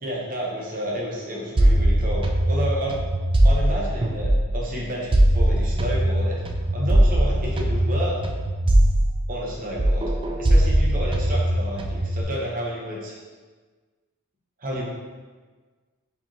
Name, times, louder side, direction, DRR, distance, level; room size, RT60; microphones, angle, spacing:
voice 1, 0.0-3.0 3.4-6.4 6.7-8.2 9.3-10.1 10.4-13.1 14.6-14.9, equal, 40° right, -3 dB, 0.9 m, -30 dB
sound 1, 1.6-4.7 5.1-9.5 9.8-12.2, right 1 dB, 25° right, 0.3 m, -20 dB
4.8 x 3.4 x 2.9 m, 1.4 s
head